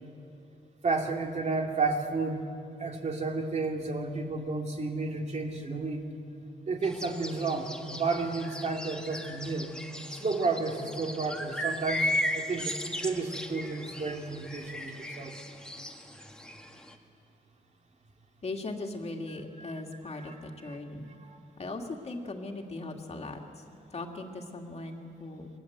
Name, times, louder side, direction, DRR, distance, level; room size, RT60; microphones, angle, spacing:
voice 1, 0.8-2.4 2.8-6.0 6.7-9.7 10.1-15.3 19.6-19.8 20.1-20.3 20.7-20.8 21.2-21.4, right 3 dB, 40° right, 2 dB, 2.7 m, -32 dB
sound 1, 6.8-16.9, left 1 dB, 5° left, 1.5 m, -37 dB
voice 2, 18.4-21.1 21.6-23.4 23.9-25.5, left 2 dB, 35° left, 3 dB, 2.3 m, -39 dB
27.5 x 22.0 x 8.1 m, 2.8 s
wide cardioid pair, 160°, 17 cm